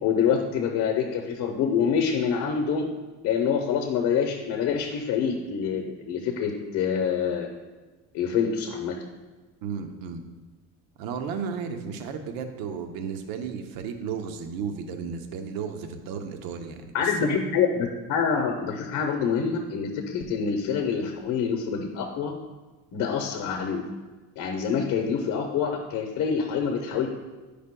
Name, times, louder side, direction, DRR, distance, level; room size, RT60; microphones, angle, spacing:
voice 1, 0.0-2.9 3.2-7.5 8.1-9.0 16.9-22.3 22.9-23.8 24.4-27.1, left 6 dB, 65° left, 2 dB, 0.9 m, -26 dB
voice 2, 9.6-10.2 11.0-17.4, right 6 dB, 85° right, 6 dB, 0.8 m, -34 dB
11.0 x 5.0 x 2.2 m, 1.3 s
cardioid pair, 120°, 34 cm